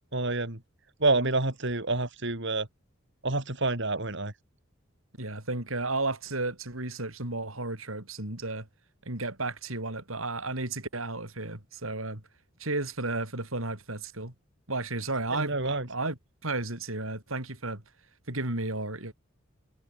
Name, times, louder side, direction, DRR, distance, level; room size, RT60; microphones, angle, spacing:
voice 1, 0.1-0.6 1.0-2.7 3.2-4.3 15.3-15.9, right 2 dB, 60° right, 4.4 m, -28 dB
voice 2, 5.2-8.7 9.1-12.2 12.6-14.3 14.7-17.8 18.3-19.1, right 2 dB, 90° right, 5.4 m, -33 dB
head